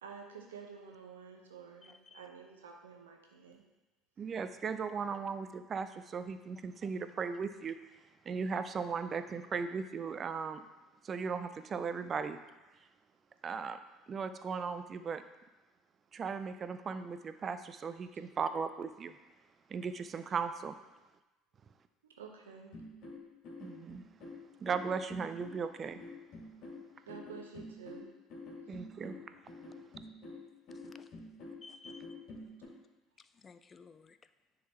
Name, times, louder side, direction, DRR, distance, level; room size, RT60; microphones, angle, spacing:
voice 1, 0.0-3.6 22.1-22.7 27.1-28.1, right 6 dB, 85° right, 1 dB, 0.9 m, -50 dB
voice 2, 1.8-2.2 30.7-31.1 31.6-32.1 33.2-34.2, left 4 dB, 30° left, 12 dB, 0.4 m, -55 dB
voice 3, 4.2-7.8 8.3-10.6 11.0-12.4 13.4-13.8 14.1-15.2 16.1-19.1 19.7-20.8 23.6-24.1 24.6-26.0 28.7-29.2, right 5 dB, 35° right, 10 dB, 0.4 m, -37 dB
sound 1, 22.7-32.7, left 2 dB, 55° left, 2.1 m, -48 dB
9.9 x 3.9 x 3.0 m, 1.1 s
hypercardioid pair, 65°, 0 cm